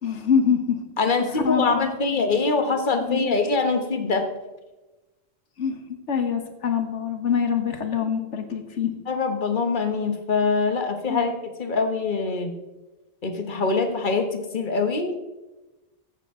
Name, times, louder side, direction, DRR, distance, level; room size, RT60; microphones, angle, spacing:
voice 1, 0.0-0.8 1.4-1.9 3.0-3.4 5.6-5.8 6.1-8.9 11.1-11.3, left 7 dB, 80° left, 7 dB, 1.5 m, -24 dB
voice 2, 1.0-4.3 9.1-11.3 11.6-12.5 13.2-15.1, left 4 dB, 45° left, 6 dB, 1.4 m, -24 dB
14.5 x 8.4 x 3.7 m, 1.1 s
omnidirectional pair, 1.2 m